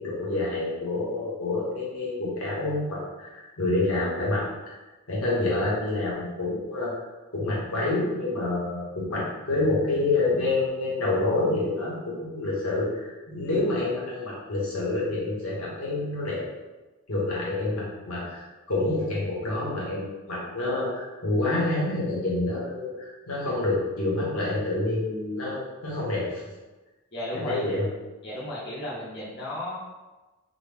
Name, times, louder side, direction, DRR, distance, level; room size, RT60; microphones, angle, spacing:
voice 1, 0.0-4.5 5.1-6.9 7.3-16.4 17.1-26.4 27.3-27.9, left 2 dB, 70° left, -6 dB, 1.3 m, -27 dB
voice 2, 27.1-27.6 28.2-29.7, left 1 dB, 50° left, -7 dB, 0.9 m, -34 dB
3.9 x 2.3 x 3.4 m, 1.2 s
head